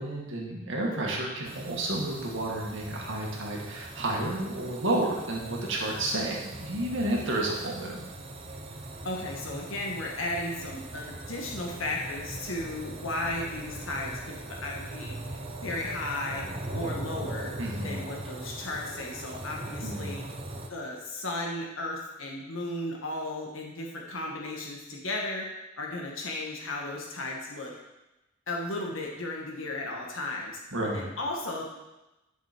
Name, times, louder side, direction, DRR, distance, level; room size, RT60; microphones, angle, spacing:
voice 1, 0.0-8.1 17.6-18.0 19.8-20.2 30.7-31.1, right 1 dB, 65° right, -2 dB, 2.2 m, -31 dB
sound 1, 1.4-20.7, right 2 dB, 30° right, 0.9 m, -40 dB
voice 2, 9.0-15.1 15.6-16.4 16.7-17.5 17.8-20.2 20.7-25.5 25.8-27.7 28.5-30.6 30.9-31.6, left 2 dB, 70° left, -1 dB, 1.7 m, -35 dB
11.0 x 6.5 x 4.5 m, 1.0 s
head